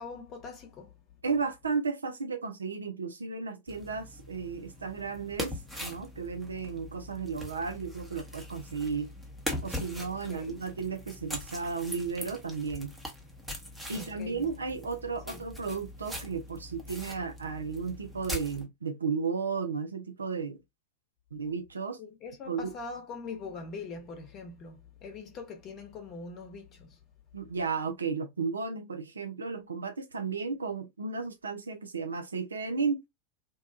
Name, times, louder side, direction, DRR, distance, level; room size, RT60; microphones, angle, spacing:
voice 1, 0.0-1.0 10.3-10.6 13.9-14.5 15.3-15.4 22.0-27.0, left 4 dB, 35° left, 0.9 m, -43 dB
voice 2, 1.2-9.1 9.6-12.9 13.9-20.6 21.3-22.0 22.5-22.7 27.3-33.0, right 5 dB, 75° right, 0.4 m, -34 dB
sound 1, 3.7-18.7, left 1 dB, ahead, 0.8 m, -41 dB
2.6 x 2.2 x 2.5 m
figure-of-eight pair, 90°, 0 cm